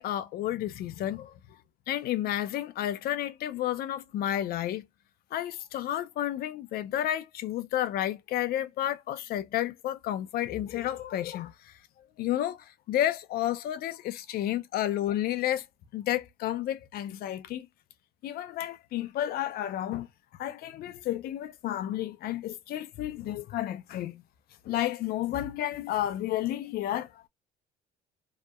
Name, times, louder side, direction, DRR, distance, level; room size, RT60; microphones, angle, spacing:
voice 1, 0.0-1.3 1.9-4.8 5.3-11.7 12.2-15.7 15.9-17.7 18.2-20.1 20.4-24.2 24.6-27.2, left 12 dB, 65° left, 0.4 m, -31 dB
2.8 x 2.1 x 2.2 m
cardioid pair, 110°, 17 cm